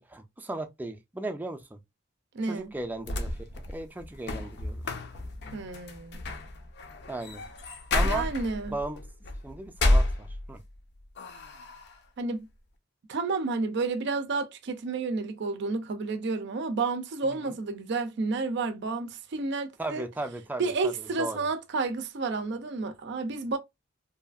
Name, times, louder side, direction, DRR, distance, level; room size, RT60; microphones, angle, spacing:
voice 1, 0.0-1.8 2.5-4.9 7.1-7.5 7.9-8.2 8.7-9.0 9.4-10.6 17.2-17.6 19.8-20.9 21.2-21.5, right 2 dB, 10° right, 0.4 m, -36 dB
voice 2, 2.3-2.8 5.5-6.2 8.0-8.8 12.2-12.5 13.1-20.1 20.6-23.6, right 3 dB, 65° right, 0.5 m, -31 dB
sound 1, 2.8-10.8 11.2-12.0, left 1 dB, 60° left, 0.5 m, -30 dB
2.7 x 2.4 x 2.3 m
head